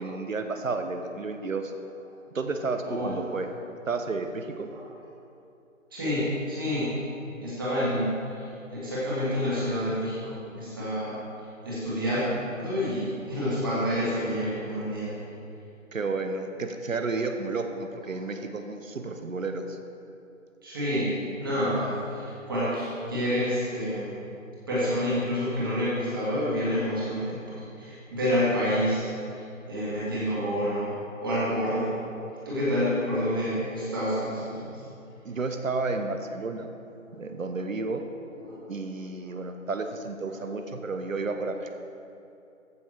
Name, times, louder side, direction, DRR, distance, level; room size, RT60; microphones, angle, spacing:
voice 1, 0.0-1.7 2.3-3.5 3.9-4.7 15.9-19.8 35.2-36.7 37.2-38.0 38.7-41.7, right 3 dB, 70° right, 6 dB, 1.1 m, -31 dB
voice 2, 2.8-3.3 4.7-4.8 5.9-6.9 7.4-11.2 11.6-12.2 12.6-15.1 20.6-24.1 24.7-31.9 32.5-34.8 37.1-37.3 38.4-38.7, equal, 15° right, -9 dB, 1.9 m, -28 dB
14.5 x 5.9 x 4.6 m, 2.7 s
figure-of-eight pair, 170°, 41 cm